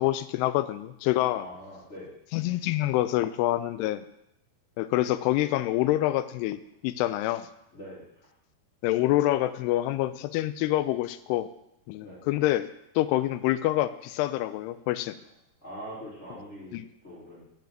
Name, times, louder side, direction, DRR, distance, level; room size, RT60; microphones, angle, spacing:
voice 1, 0.0-1.5 2.3-4.1 4.8-7.5 8.8-11.5 11.9-12.7 13.0-15.2 16.7-16.9, left 15 dB, 85° left, 13 dB, 2.5 m, -26 dB
voice 2, 1.3-2.1 7.7-8.0 12.0-12.2 15.6-16.8 17.0-17.4, equal, 20° left, -9 dB, 2.7 m, -42 dB
7.5 x 5.6 x 7.5 m, 0.82 s
omnidirectional pair, 4.8 m